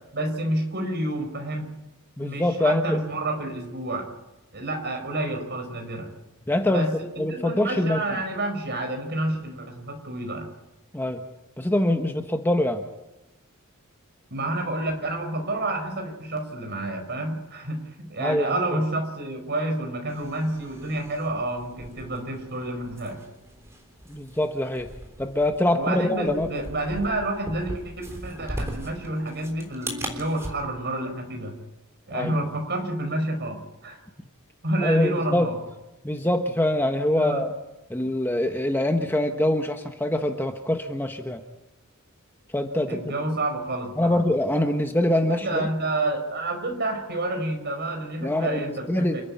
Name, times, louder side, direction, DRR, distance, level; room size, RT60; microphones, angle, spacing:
voice 1, 0.1-1.7 2.2-4.1 4.5-6.1 6.7-10.5 14.3-23.2 25.7-31.6 32.1-34.0 34.6-35.6 37.1-37.4 42.9-44.2 45.2-49.2, right 1 dB, 50° right, 4 dB, 5.3 m, -29 dB
voice 2, 2.2-3.0 6.5-6.9 7.2-8.0 10.9-11.2 11.6-12.8 18.2-18.8 24.1-24.9 25.2-26.5 32.1-32.3 34.8-35.5 36.0-37.5 37.9-41.4 42.5-43.1 44.0-45.6 48.2-48.6 48.9-49.2, left 1 dB, 10° left, 5 dB, 1.1 m, -24 dB
sound 1, 20.1-30.5, right 1 dB, 15° right, 3.6 m, -39 dB
29.0 x 9.9 x 9.9 m, 0.99 s
head